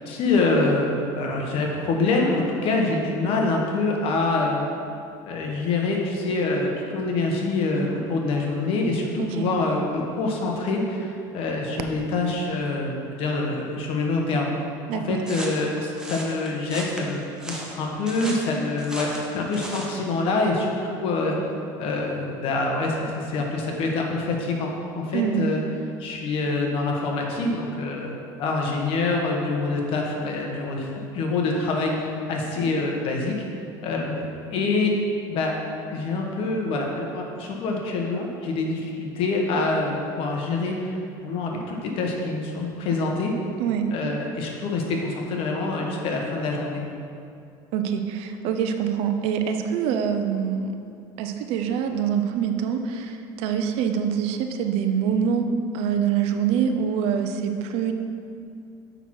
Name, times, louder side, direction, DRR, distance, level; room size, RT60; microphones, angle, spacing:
voice 1, 0.0-4.7 5.3-14.5 14.9-17.2 17.5-21.5 21.8-25.6 26.0-33.4 33.8-34.2 34.5-34.9 35.3-35.6 35.9-43.3 43.9-46.8, left 3 dB, 55° left, 0 dB, 1.3 m, -25 dB
voice 2, 9.2-9.5 14.9-15.2 25.1-25.4 43.6-43.8 47.7-50.7 51.2-55.5 55.7-57.9, right 8 dB, 65° right, 6 dB, 0.7 m, -25 dB
sound 1, 15.2-20.0, right 1 dB, 5° right, 1.1 m, -36 dB
6.7 x 5.8 x 4.8 m, 2.5 s
supercardioid pair, 115°, 11 cm